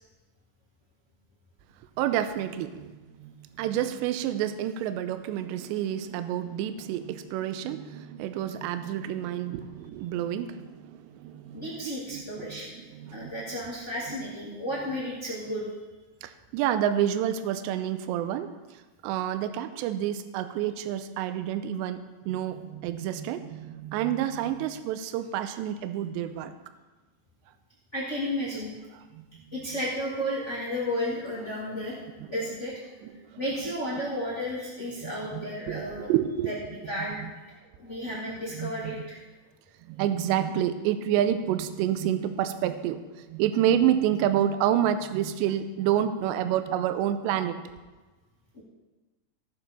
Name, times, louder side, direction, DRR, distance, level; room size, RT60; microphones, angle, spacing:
voice 1, 2.0-13.6 14.1-14.2 16.2-18.5 19.0-26.5 29.1-29.4 32.2-32.3 33.0-33.4 35.0-36.5 36.8-36.9 37.2-37.3 38.5-39.0 39.9-47.6, right 10 dB, 85° right, 10 dB, 2.6 m, -29 dB
voice 2, 11.5-12.7 13.1-15.7 27.9-28.7 29.5-31.9 32.3-32.8 33.4-36.1 36.4-36.6 36.9-37.2 37.8-39.2 48.5-48.6, equal, 60° left, -6 dB, 0.7 m, -33 dB
17.0 x 6.8 x 4.3 m, 1.2 s
omnidirectional pair, 5.5 m